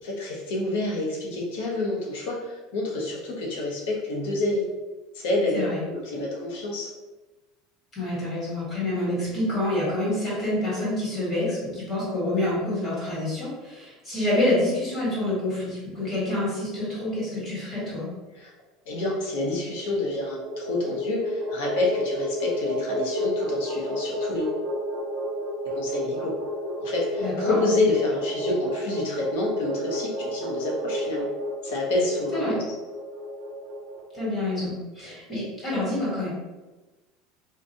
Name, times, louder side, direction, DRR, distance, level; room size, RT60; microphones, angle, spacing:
voice 1, 0.0-4.6 5.1-5.6 5.9-6.9 18.3-18.5 18.9-24.6 25.6-26.3 26.8-31.3 31.6-32.6, left 2 dB, 85° left, -2 dB, 1.0 m, -28 dB
voice 2, 7.9-18.1 27.2-27.6 32.3-32.6 34.1-36.3, left 1 dB, 20° left, -7 dB, 1.4 m, -27 dB
sound 1, 20.1-34.3, equal, 75° right, 0.8 m, -31 dB
3.7 x 2.5 x 2.6 m, 1.2 s
cardioid pair, 175°, 0 cm